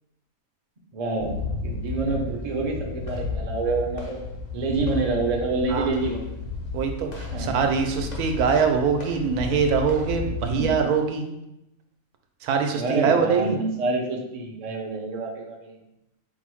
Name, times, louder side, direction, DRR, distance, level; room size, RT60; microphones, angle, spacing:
voice 1, 0.9-4.2 4.5-6.4 7.3-7.6 10.4-10.7 12.7-15.8, right 3 dB, 55° right, 0 dB, 0.4 m, -27 dB
sound 1, 1.2-10.6, left 4 dB, 50° left, 0.5 m, -33 dB
voice 2, 6.7-11.3 12.4-13.6, right 6 dB, 85° right, 5 dB, 1.1 m, -23 dB
4.5 x 2.0 x 4.5 m, 0.87 s
omnidirectional pair, 1.6 m